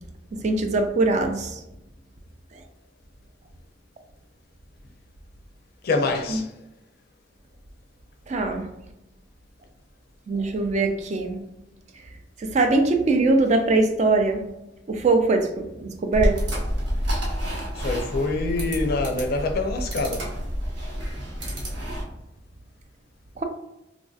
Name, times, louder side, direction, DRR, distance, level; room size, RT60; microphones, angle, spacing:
voice 1, 0.3-1.6 6.3-6.4 8.3-8.7 10.3-11.4 12.4-14.5 14.9-16.4 23.4-23.5, right 3 dB, 40° right, 0.4 m, -22 dB
voice 2, 5.8-6.5 17.7-20.3, left 3 dB, 55° left, 0.4 m, -25 dB
sound 1, 16.1-22.0, equal, 80° right, 1.0 m, -28 dB
3.1 x 2.6 x 2.3 m
head